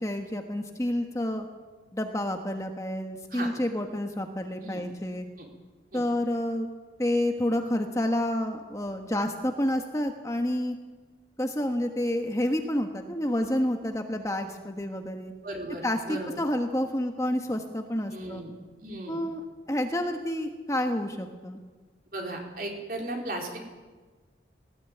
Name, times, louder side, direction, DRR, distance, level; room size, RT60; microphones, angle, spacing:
voice 1, 0.0-1.5 1.9-5.3 5.9-6.7 7.0-10.7 11.4-15.3 15.8-18.4 19.1-21.6, left 1 dB, 15° left, 4 dB, 1.3 m, -29 dB
voice 2, 15.4-16.4 18.1-18.5 18.8-19.2 22.1-23.6, right 1 dB, 50° right, 1 dB, 4.3 m, -36 dB
18.5 x 18.0 x 9.2 m, 1.3 s
head